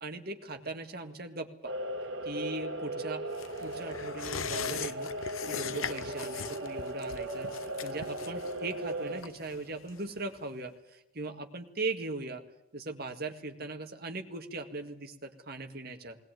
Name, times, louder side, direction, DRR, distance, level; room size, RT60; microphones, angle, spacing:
voice 1, 0.0-1.7 2.2-3.3 3.6-5.1 5.4-7.5 7.8-12.4 12.7-16.2, right 3 dB, 45° right, 6 dB, 1.9 m, -39 dB
sound 1, 1.6-9.2, right 1 dB, 65° right, 2.1 m, -37 dB
sound 2, 3.3-10.4 10.7-10.8, left 7 dB, 80° left, 0.7 m, -41 dB
19.5 x 19.5 x 9.3 m, 0.86 s
head